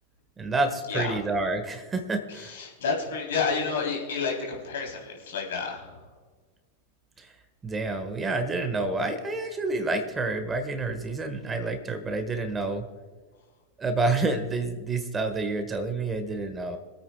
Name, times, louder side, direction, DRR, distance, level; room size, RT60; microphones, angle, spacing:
voice 1, 0.4-2.5 7.2-7.3 7.6-12.8 13.8-16.8, right 3 dB, 20° right, 8 dB, 1.5 m, -28 dB
voice 2, 2.3-6.1, left 5 dB, 70° left, 0 dB, 3.4 m, -30 dB
25.5 x 8.8 x 2.3 m, 1.4 s
figure-of-eight pair, 90°, 0 cm